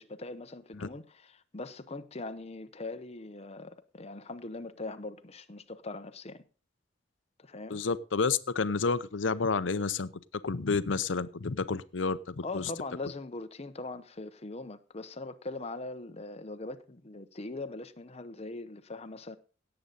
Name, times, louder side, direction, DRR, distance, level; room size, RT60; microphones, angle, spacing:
voice 1, 0.0-6.4 7.4-7.8 12.4-19.4, left 2 dB, 35° left, 0.9 m, -41 dB
voice 2, 7.7-10.1 10.4-12.7, left 4 dB, 90° left, 0.7 m, -30 dB
17.5 x 7.9 x 4.0 m
head